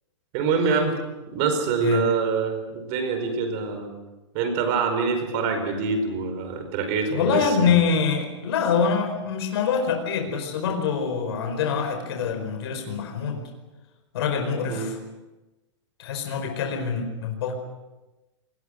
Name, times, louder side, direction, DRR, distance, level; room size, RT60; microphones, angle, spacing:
voice 1, 0.3-0.9 1.3-3.9 4.3-7.7 14.7-14.9, right 5 dB, 35° right, 6 dB, 4.9 m, -25 dB
voice 2, 7.1-13.4 14.1-15.0 16.0-17.5, left 6 dB, 55° left, 3 dB, 5.0 m, -25 dB
28.0 x 20.5 x 6.6 m, 1.1 s
supercardioid pair, 170°, 15 cm